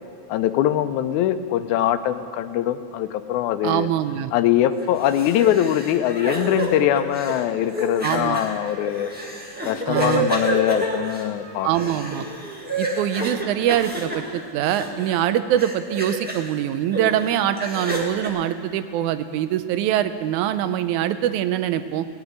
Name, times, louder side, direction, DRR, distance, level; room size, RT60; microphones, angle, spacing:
voice 1, 0.3-3.9 4.3-9.1 9.6-11.9, left 11 dB, 85° left, 11 dB, 2.0 m, -22 dB
voice 2, 3.6-4.3 8.0-8.4 9.9-10.3 11.6-12.3 12.8-22.1, right 11 dB, 90° right, 11 dB, 2.0 m, -23 dB
sound 1, 4.8-15.3 15.6-16.5 16.9-18.3, right 1 dB, 10° right, 0.4 m, -29 dB
18.5 x 6.2 x 9.5 m, 2.3 s
omnidirectional pair, 3.4 m